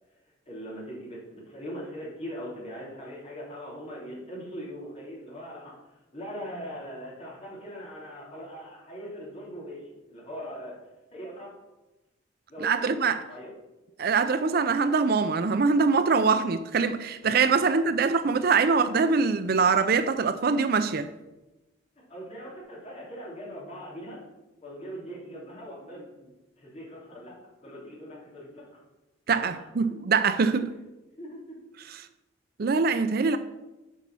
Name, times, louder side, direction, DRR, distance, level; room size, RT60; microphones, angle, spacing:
voice 1, 0.4-5.7 6.1-10.7 11.1-11.5 12.5-12.9 13.2-13.5 17.5-17.8 22.1-24.2 24.6-26.3 26.6-27.3 27.6-28.8 29.3-30.0 31.2-31.5, equal, 35° left, 3.4 m, -41 dB
voice 2, 12.6-13.2 14.0-21.1 29.3-30.7 32.6-33.4, right 5 dB, 50° right, 0.4 m, -23 dB
8.1 x 5.5 x 6.1 m
head